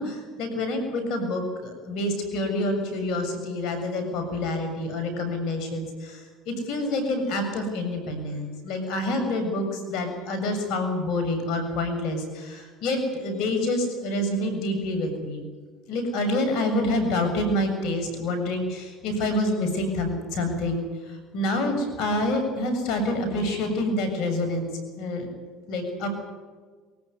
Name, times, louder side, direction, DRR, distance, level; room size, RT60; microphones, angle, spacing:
voice 1, 0.0-15.4 15.9-24.7 25.0-25.3 25.7-26.1, left 1 dB, 65° left, 6 dB, 7.2 m, -27 dB
23.5 x 15.0 x 9.8 m, 1.5 s
hypercardioid pair, 85°, 0 cm